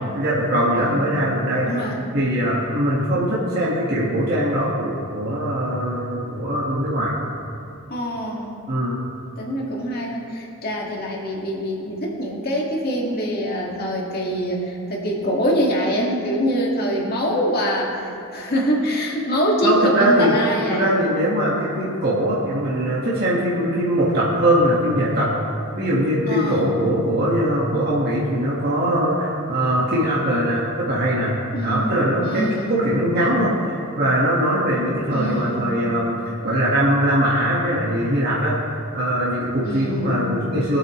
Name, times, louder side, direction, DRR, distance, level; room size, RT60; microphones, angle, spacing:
voice 1, 0.0-1.7 2.1-7.1 8.7-9.0 19.6-20.4 20.7-25.3 25.8-40.8, equal, 45° right, -7 dB, 1.7 m, -21 dB
voice 2, 1.6-2.0 7.9-8.6 9.4-20.9 26.3-26.9 31.5-32.8 35.1-35.8 39.6-40.4, equal, 45° left, -2 dB, 2.1 m, -24 dB
22.0 x 8.7 x 3.2 m, 2.6 s
head